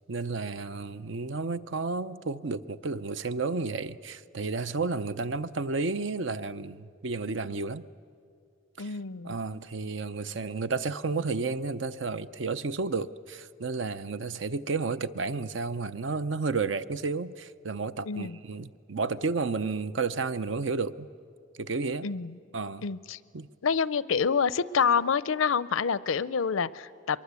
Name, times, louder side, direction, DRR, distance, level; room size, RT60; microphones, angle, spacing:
voice 1, 0.1-7.8 8.8-9.0 9.2-21.1 21.6-22.1 22.5-22.9 23.3-23.5, right 4 dB, 70° right, 0.6 m, -32 dB
voice 2, 8.8-9.4 18.1-18.4 22.0-22.3 22.8-23.2 23.6-27.2, left 6 dB, 90° left, 0.6 m, -27 dB
23.5 x 23.0 x 8.2 m
head